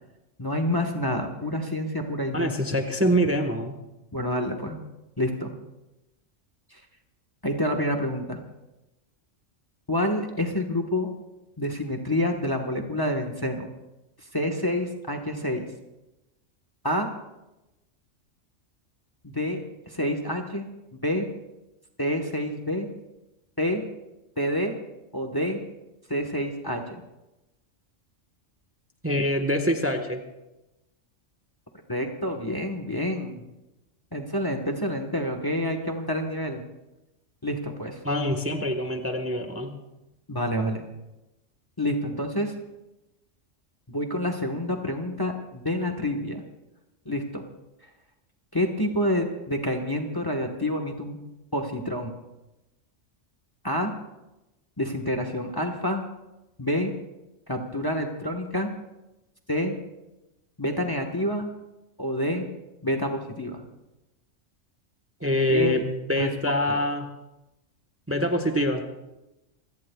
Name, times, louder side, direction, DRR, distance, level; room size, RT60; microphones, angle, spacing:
voice 1, 0.4-2.5 4.1-4.8 5.2-5.5 6.7-6.8 7.4-8.4 9.9-11.1 11.6-13.7 14.3-15.7 16.8-17.1 19.2-20.7 21.0-21.3 22.0-22.9 23.6-23.8 24.4-24.8 25.1-25.6 26.1-27.0 31.9-33.4 34.1-36.6 37.4-38.0 40.3-40.8 41.8-42.5 43.9-46.4 47.0-47.4 48.5-51.2 51.5-52.1 53.6-53.9 54.8-56.0 56.6-56.9 57.5-58.7 59.5-59.7 60.6-61.5 62.0-62.5 62.8-63.6 65.5-65.7 66.2-66.3 66.7-66.8, left 1 dB, 20° left, 4 dB, 1.2 m, -28 dB
voice 2, 2.3-3.8 29.0-30.2 38.0-39.7 65.2-67.1 68.1-68.8, equal, 10° right, 4 dB, 1.2 m, -25 dB
27.0 x 17.0 x 2.3 m, 0.98 s
omnidirectional pair, 1.3 m